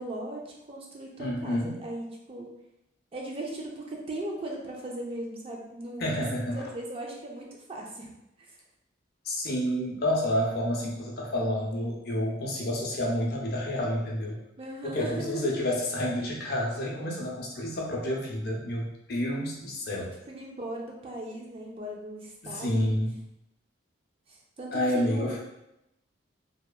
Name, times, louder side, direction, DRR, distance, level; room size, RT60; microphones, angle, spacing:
voice 1, 0.0-2.5 3.1-8.1 8.4-8.6 14.6-15.5 20.0-22.9 24.3-25.4, right 1 dB, 30° right, -1 dB, 0.4 m, -38 dB
voice 2, 1.2-1.8 6.0-6.6 9.3-14.4 14.8-20.1 22.4-23.3 24.7-25.4, left 1 dB, 50° left, -2 dB, 0.6 m, -29 dB
2.8 x 2.3 x 2.3 m, 0.87 s
head